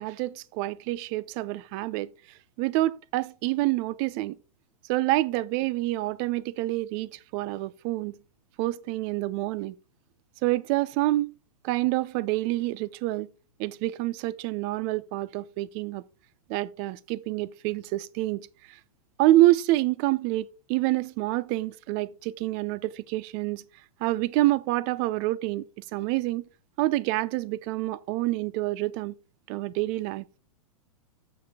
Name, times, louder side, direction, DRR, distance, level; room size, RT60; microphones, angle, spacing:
voice 1, 0.0-2.1 2.6-4.4 4.9-8.2 8.6-9.8 10.4-11.3 11.6-13.3 13.6-16.0 16.5-18.8 19.2-23.6 24.0-26.4 26.8-29.2 29.5-30.2, right 17 dB, 35° right, 0.4 m, -27 dB
7.2 x 5.8 x 3.6 m
hypercardioid pair, 115°, 18 cm